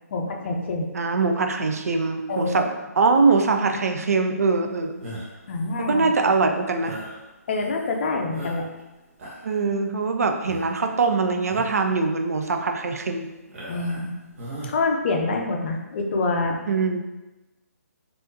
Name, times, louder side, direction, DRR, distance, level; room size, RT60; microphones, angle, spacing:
voice 1, 0.1-0.9 2.3-2.7 5.5-6.1 7.5-8.7 13.7-14.1 14.6-16.6, left 3 dB, 45° left, 2 dB, 0.5 m, -26 dB
voice 2, 0.9-2.7 3.0-4.9 5.8-7.0 9.4-13.3 16.7-17.0, right 4 dB, 65° right, 6 dB, 0.4 m, -22 dB
sound 1, 5.0-5.5 6.8-7.2 7.8-7.9 8.3-8.8 9.1-9.6 10.5-10.8 11.4-11.8 12.3-12.4 13.5-14.1 14.4-14.7, right 1 dB, 50° right, 1.0 m, -38 dB
3.4 x 2.7 x 2.7 m, 1.1 s
figure-of-eight pair, 140°, 9 cm